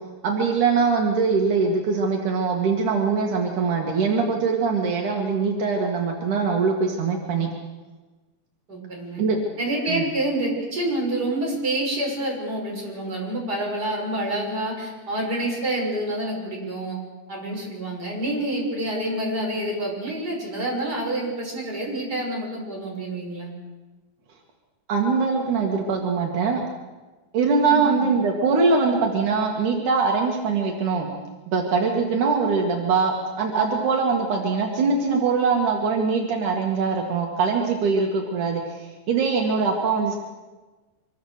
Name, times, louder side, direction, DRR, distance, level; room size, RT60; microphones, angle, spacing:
voice 1, 0.2-7.5 9.2-9.4 9.9-10.1 24.9-26.6 27.3-31.1 31.5-40.2, right 4 dB, 75° right, 0 dB, 3.5 m, -22 dB
voice 2, 8.7-9.2 9.6-17.0 17.3-23.5 27.7-28.0, right 1 dB, 30° right, -2 dB, 7.2 m, -27 dB
25.5 x 23.5 x 6.7 m, 1.2 s
omnidirectional pair, 3.6 m